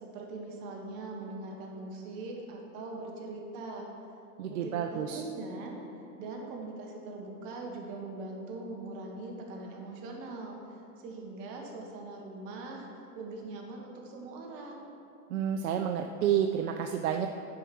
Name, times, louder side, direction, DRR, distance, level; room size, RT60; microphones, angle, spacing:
voice 1, 0.0-3.9 4.5-5.8 6.2-10.6 11.0-12.9 13.1-14.9, right 3 dB, 45° right, 0 dB, 1.4 m, -41 dB
voice 2, 4.4-5.2 15.3-17.3, right 9 dB, 70° right, 5 dB, 0.6 m, -30 dB
9.7 x 4.8 x 6.0 m, 2.6 s
supercardioid pair, 135°, 45 cm